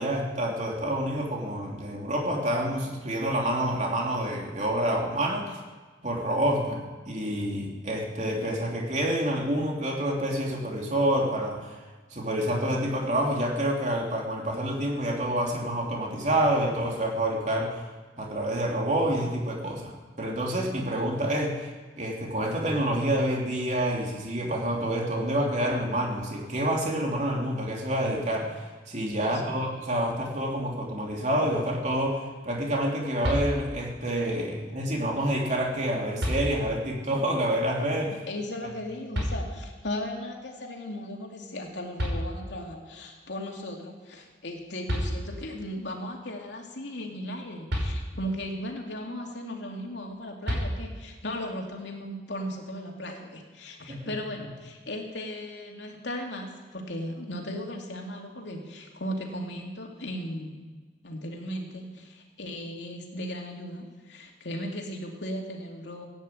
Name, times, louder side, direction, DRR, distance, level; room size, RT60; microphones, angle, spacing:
voice 1, 0.0-5.5 6.0-11.7 12.1-17.8 18.2-21.7 22.0-38.2 53.9-54.0, right 1 dB, 40° right, -1 dB, 3.2 m, -28 dB
voice 2, 29.2-29.6 38.0-60.7 61.0-66.1, left 1 dB, 80° left, 1 dB, 2.8 m, -37 dB
sound 1, 33.2-34.0 35.5-35.6 36.2-37.0 39.1-39.9 41.6-41.7 42.0-42.8 44.5-44.6 44.9-45.6 47.7-48.5 50.4-51.2, equal, 85° right, 5.3 m, -31 dB
16.5 x 9.8 x 8.7 m, 1.4 s
head